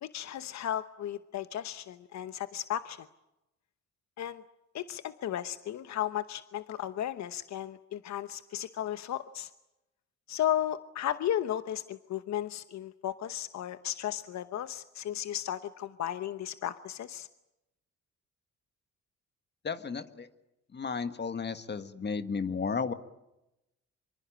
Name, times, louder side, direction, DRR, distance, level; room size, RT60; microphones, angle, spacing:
voice 1, 0.0-3.1 4.2-4.4 4.7-9.5 10.3-17.3, left 11 dB, 65° left, 12 dB, 1.0 m, -34 dB
voice 2, 19.6-20.3 20.7-22.9, left 5 dB, 35° left, 10 dB, 1.7 m, -33 dB
25.0 x 23.5 x 8.8 m, 0.93 s
cardioid pair, 90°, 30 cm